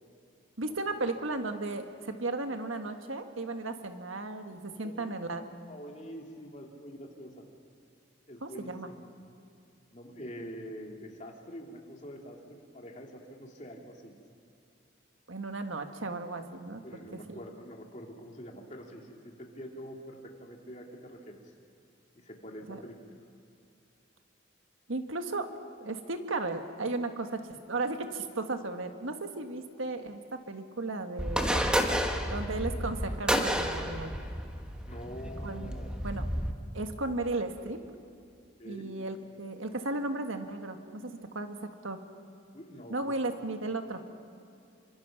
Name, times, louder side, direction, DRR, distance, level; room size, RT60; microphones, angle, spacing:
voice 1, 0.6-5.4 8.4-8.9 15.3-17.4 22.7-22.8 24.9-25.5 25.8-27.4 27.7-31.7 32.3-34.1 35.4-36.3 36.7-37.8 38.6-41.6 41.8-42.0 42.9-44.0, right 2 dB, 85° right, 6 dB, 1.6 m, -35 dB
voice 2, 4.8-5.2 5.7-7.4 8.3-9.0 9.9-14.1 16.8-19.1 19.4-21.5 22.2-22.9 34.8-35.9 38.6-38.9 42.5-43.0, equal, 35° left, 1 dB, 2.6 m, -45 dB
sound 1, 31.2-36.5, equal, 5° right, 1.2 m, -31 dB
26.5 x 24.5 x 6.0 m, 2.5 s
head